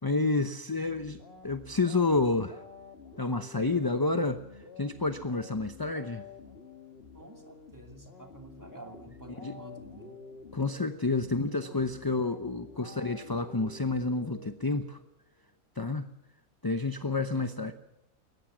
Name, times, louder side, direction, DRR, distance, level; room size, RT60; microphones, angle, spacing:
voice 1, 0.0-2.6 3.2-4.4 4.8-6.2 9.4-9.6 10.5-15.0 15.8-16.1 16.6-17.8, left 3 dB, 20° left, 9 dB, 0.6 m, -29 dB
sound 1, 0.8-15.1, left 4 dB, 40° left, 2.0 m, -50 dB
voice 2, 7.1-10.2 12.8-13.1 17.3-17.8, right 1 dB, 10° right, 4 dB, 2.6 m, -50 dB
22.5 x 19.5 x 6.2 m, 0.87 s
omnidirectional pair, 1.5 m